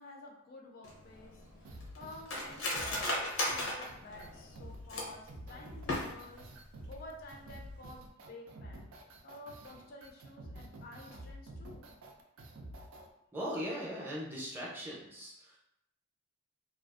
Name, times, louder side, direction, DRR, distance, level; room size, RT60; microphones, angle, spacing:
voice 1, 0.0-6.5 6.9-8.9 9.2-11.9, left 2 dB, 45° left, 0 dB, 0.3 m, -51 dB
Cutlery silverware, 0.8-5.3 5.8-6.5 6.8-6.9 7.2-7.6 7.9-8.1, left 1 dB, 85° left, 0.6 m, -36 dB
sound 1, 1.6-13.1, right 1 dB, 85° right, 0.4 m, -49 dB
voice 2, 13.3-15.6, equal, 10° right, -5 dB, 0.5 m, -39 dB
2.4 x 2.3 x 2.4 m, 0.83 s
head